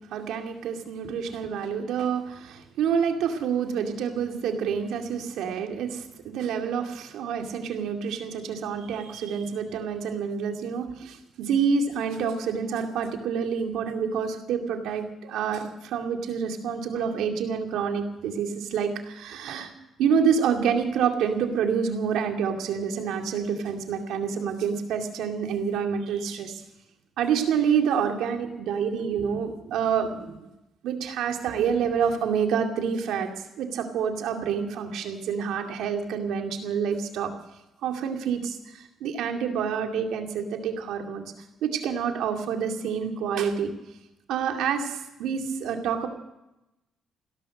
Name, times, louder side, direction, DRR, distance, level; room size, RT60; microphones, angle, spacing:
voice 1, 0.1-19.7 20.0-26.6 27.2-30.4 30.8-33.3 33.6-37.3 37.8-41.2 41.6-43.7 44.3-46.1, right 7 dB, 85° right, 4 dB, 2.3 m, -27 dB
16.5 x 13.0 x 6.5 m, 0.91 s
cardioid pair, 90°, 0 cm